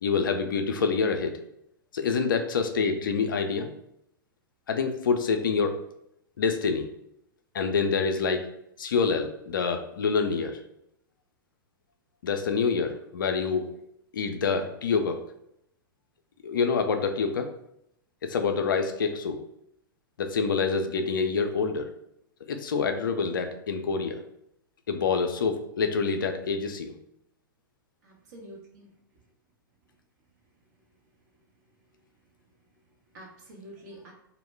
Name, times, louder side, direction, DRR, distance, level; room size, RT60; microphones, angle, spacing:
voice 1, 0.0-1.4 1.9-3.7 4.7-5.8 6.4-6.9 7.5-8.5 8.8-10.6 12.2-13.7 14.1-15.2 16.4-17.5 18.2-19.4 20.2-21.9 22.5-24.2 24.9-26.9, left 5 dB, 65° left, 6 dB, 0.4 m, -26 dB
voice 2, 28.0-28.9 30.8-30.9 31.3-31.4 32.2-32.3 32.7-34.1, right 1 dB, 50° right, -1 dB, 0.8 m, -48 dB
2.2 x 2.1 x 3.1 m, 0.76 s
figure-of-eight pair, 105°, 12 cm